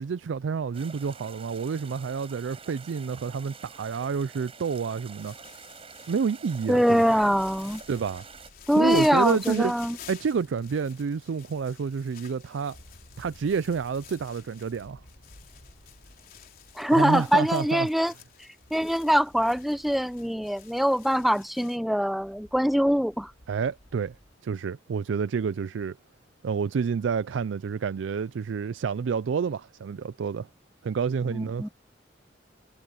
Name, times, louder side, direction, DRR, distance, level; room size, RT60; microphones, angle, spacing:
voice 1, 0.0-5.3 6.1-7.2 7.9-8.2 8.8-9.7 10.1-12.8 13.2-15.0 16.9-17.9 23.5-24.2 24.4-26.0 26.4-30.5 30.8-31.7, right 6 dB, 85° right, 0.4 m, -29 dB
sound 1, 0.7-8.5, right 5 dB, 30° right, 6.6 m, -47 dB
sound 2, 5.2-21.8, left 9 dB, 50° left, 4.0 m, -50 dB
voice 2, 6.7-7.8 8.7-10.0 16.8-18.1 18.7-23.3 31.3-31.7, equal, ahead, 0.6 m, -23 dB
sound 3, 7.2-24.4, equal, 70° left, 7.1 m, -57 dB
head